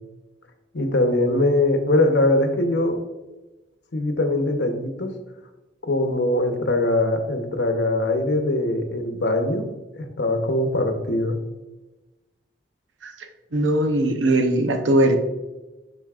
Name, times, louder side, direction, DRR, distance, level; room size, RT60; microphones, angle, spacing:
voice 1, 0.7-3.0 3.9-5.1 5.9-9.6 10.0-11.4, left 2 dB, 70° left, 5 dB, 0.9 m, -22 dB
voice 2, 13.5-15.2, right 1 dB, 85° right, 6 dB, 0.7 m, -20 dB
10.0 x 3.9 x 2.4 m, 1.1 s
head